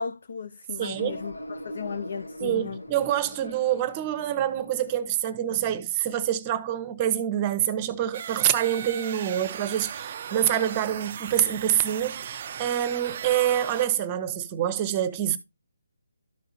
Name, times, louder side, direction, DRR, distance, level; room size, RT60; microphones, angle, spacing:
voice 1, 0.0-1.3 1.6-2.8, left 5 dB, 55° left, 0.5 m, -35 dB
voice 2, 0.8-1.2 2.4-15.4, right 11 dB, 20° right, 0.8 m, -26 dB
sound 1, 1.0-5.3, equal, 85° left, 1.6 m, -42 dB
sound 2, 8.1-13.9, right 8 dB, 35° right, 0.3 m, -37 dB
13.0 x 4.9 x 2.6 m
figure-of-eight pair, 150°, 0 cm